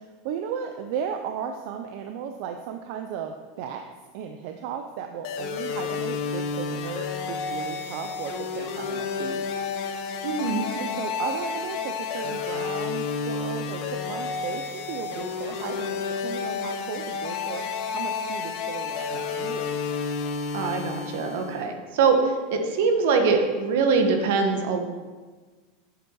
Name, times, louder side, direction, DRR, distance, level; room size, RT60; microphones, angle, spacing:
voice 1, 0.0-3.8 4.1-9.4 9.7-9.8 10.8-19.7, right 7 dB, 55° right, 5 dB, 0.7 m, -35 dB
sound 1, 5.2-21.7, left 5 dB, 45° left, 1.1 m, -31 dB
voice 2, 10.2-10.7 20.5-24.8, right 4 dB, 70° right, 5 dB, 1.5 m, -23 dB
9.8 x 8.2 x 4.8 m, 1.4 s
supercardioid pair, 160°, 0 cm